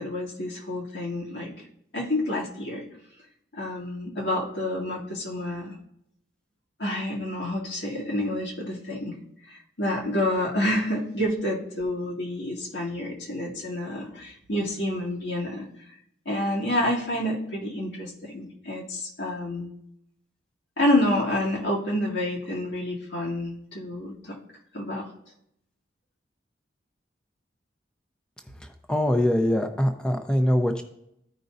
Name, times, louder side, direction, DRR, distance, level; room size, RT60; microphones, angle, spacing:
voice 1, 0.0-1.5 1.9-2.8 3.5-5.8 6.8-9.1 9.4-15.7 16.3-19.7 20.8-24.4 24.7-25.0, left 1 dB, 85° left, -3 dB, 2.2 m, -28 dB
voice 2, 28.6-30.8, left 1 dB, 5° left, 5 dB, 0.7 m, -23 dB
14.0 x 5.4 x 2.7 m, 0.76 s
head